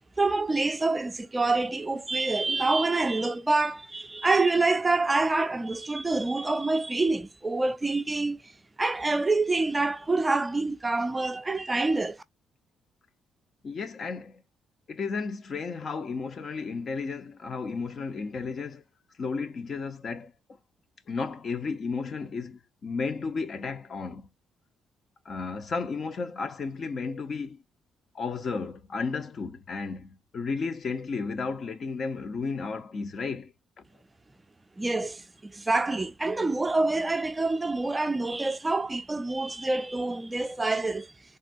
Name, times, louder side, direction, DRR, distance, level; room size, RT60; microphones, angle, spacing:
voice 1, 0.2-8.4 8.8-12.2 34.8-41.1, right 3 dB, 20° right, 0.4 m, -26 dB
voice 2, 13.6-14.4 14.9-18.8 19.2-20.3 21.1-24.3 25.2-27.6 28.1-33.8, left 4 dB, 50° left, 0.6 m, -33 dB
3.5 x 2.1 x 2.5 m
cardioid pair, 90°, 0 cm